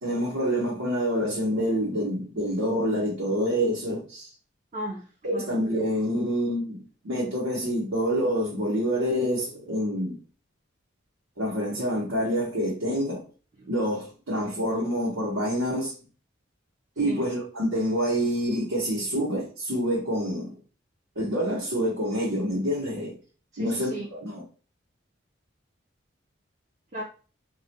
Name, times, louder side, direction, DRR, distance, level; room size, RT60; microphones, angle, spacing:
voice 1, 0.0-4.3 5.2-10.2 11.4-13.2 13.7-15.9 17.0-20.5 21.2-23.2 23.6-24.4, equal, 90° right, 0.9 m, -27 dB
voice 2, 4.7-5.5 13.6-13.7 14.5-14.6 17.1-17.2 23.5-24.1 26.9-27.0, right 1 dB, 35° right, 0.5 m, -36 dB
2.3 x 2.1 x 2.7 m
head